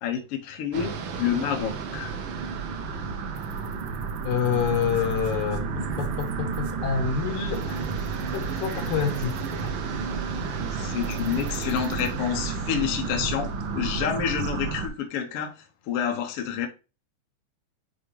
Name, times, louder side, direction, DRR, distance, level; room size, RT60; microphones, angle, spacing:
voice 1, 0.0-2.2 10.7-15.5 15.9-16.7, left 8 dB, 65° left, 1.6 m, -28 dB
sound 1, 0.7-14.9, right 5 dB, 75° right, 1.1 m, -31 dB
voice 2, 4.2-7.9 8.3-9.8, left 7 dB, 80° left, 2.6 m, -28 dB
9.9 x 3.5 x 3.2 m
omnidirectional pair, 3.3 m